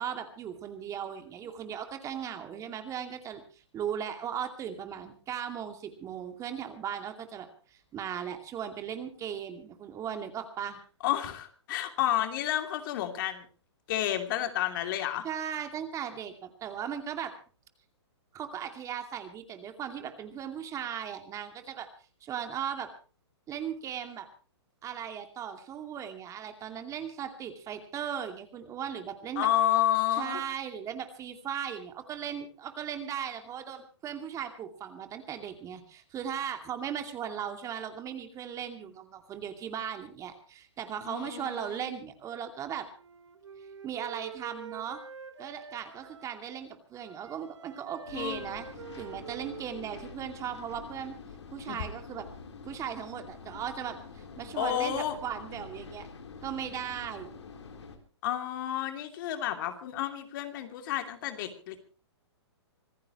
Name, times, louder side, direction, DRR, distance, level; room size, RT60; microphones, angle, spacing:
voice 1, 0.0-3.4 3.7-10.8 15.2-17.3 18.3-21.9 22.2-22.9 23.5-24.3 24.8-29.5 30.2-42.9 43.8-45.0 45.4-48.7 49.0-51.2 51.5-52.3 52.7-56.1 56.4-57.3, right 8 dB, 20° right, 6 dB, 2.5 m, -37 dB
voice 2, 11.0-13.5 13.9-15.2 29.4-30.4 41.0-41.9 48.1-48.6 51.7-51.8 54.5-55.2 58.2-61.8, left 12 dB, 45° left, 6 dB, 3.0 m, -30 dB
Wind instrument woodwind instrument, 42.9-46.6 46.9-50.5, right 6 dB, 80° right, 2.7 m, -47 dB
sound 1, 48.1-58.0, left 4 dB, 75° left, 3.8 m, -47 dB
26.0 x 15.5 x 3.1 m, 0.38 s
hypercardioid pair, 130°, 15 cm